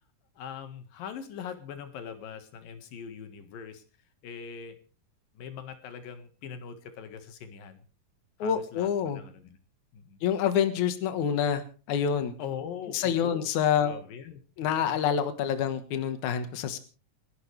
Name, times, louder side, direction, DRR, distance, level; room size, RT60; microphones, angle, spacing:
voice 1, 0.4-3.8 4.2-4.8 5.4-7.8 8.4-9.6 9.9-10.2 12.4-13.5 13.8-15.0, left 7 dB, 90° left, 8 dB, 3.4 m, -41 dB
voice 2, 8.4-9.2 10.2-11.6 11.9-12.3 12.9-13.9 14.6-16.8, left 8 dB, 65° left, 9 dB, 2.7 m, -27 dB
29.5 x 11.5 x 3.4 m, 0.37 s
omnidirectional pair, 3.9 m